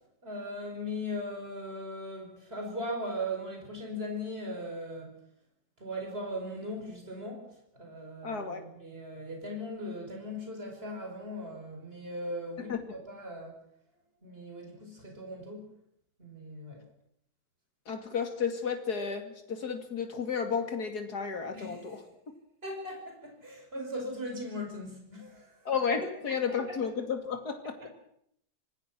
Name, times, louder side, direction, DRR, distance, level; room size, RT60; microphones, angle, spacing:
voice 1, 0.2-5.2 5.8-7.5 7.7-13.5 14.2-15.6 16.2-16.8 21.5-22.1 22.6-25.5 26.0-26.3, equal, 30° right, 2 dB, 5.8 m, -39 dB
voice 2, 8.2-8.6 12.7-12.8 17.9-22.3 25.6-27.9, left 6 dB, 60° left, 6 dB, 3.1 m, -33 dB
26.0 x 19.5 x 6.2 m, 0.72 s
omnidirectional pair, 1.9 m